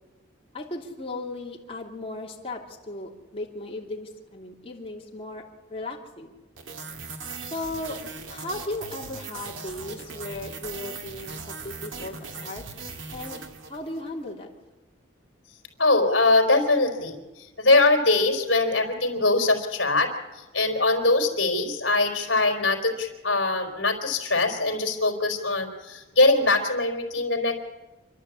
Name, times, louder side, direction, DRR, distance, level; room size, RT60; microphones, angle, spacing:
voice 1, 0.5-5.4 5.7-6.3 7.5-8.0 8.3-12.6 13.1-14.5, left 2 dB, 30° left, -1 dB, 2.9 m, -36 dB
sound 1, 6.6-14.1, right 4 dB, 75° right, 2.1 m, -39 dB
voice 2, 15.8-17.2 17.6-20.1 20.4-27.6, left 2 dB, 60° left, 4 dB, 3.9 m, -22 dB
27.5 x 12.0 x 8.4 m, 1.2 s
head